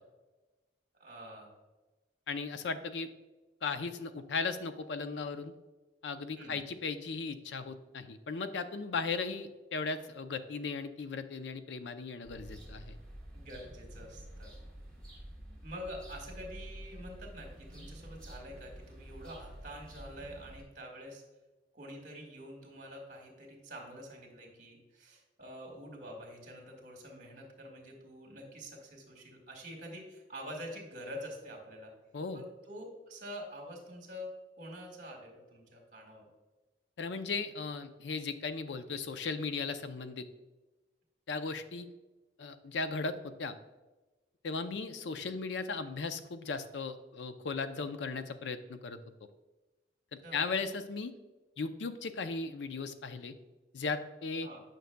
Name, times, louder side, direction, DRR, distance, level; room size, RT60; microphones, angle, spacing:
voice 1, 0.9-1.5 6.4-6.6 13.3-14.5 15.6-21.2 21.7-31.9 32.3-36.3 50.2-50.5 54.4-54.6, equal, 45° right, 1 dB, 1.8 m, -46 dB
voice 2, 2.3-3.1 3.6-5.5 6.0-13.0 32.1-32.4 37.0-40.2 41.3-41.9 42.4-43.5 44.4-49.0 50.1-51.1 51.6-53.3 53.7-54.5, left 4 dB, 80° left, 10 dB, 0.5 m, -37 dB
sound 1, 12.2-20.6, right 1 dB, 5° left, 1.8 m, -49 dB
9.2 x 6.0 x 2.2 m, 1.1 s
head